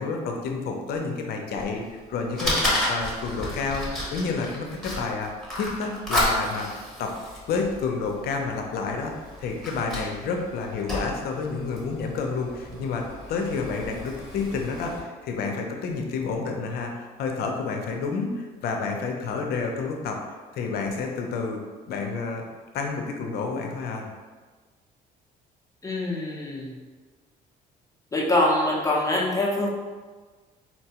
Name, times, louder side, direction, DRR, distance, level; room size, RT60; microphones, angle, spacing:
voice 1, 0.0-5.3 5.6-7.1 7.5-20.2 20.5-21.6 21.9-22.4 22.7-24.1, left 4 dB, 70° left, 2 dB, 0.6 m, -29 dB
Fire, 1.6-15.0, left 1 dB, ahead, 1.0 m, -32 dB
voice 2, 25.8-26.8 28.1-29.7, left 1 dB, 20° left, -3 dB, 0.6 m, -24 dB
4.1 x 2.2 x 2.8 m, 1.4 s
cardioid pair, 110°, 17 cm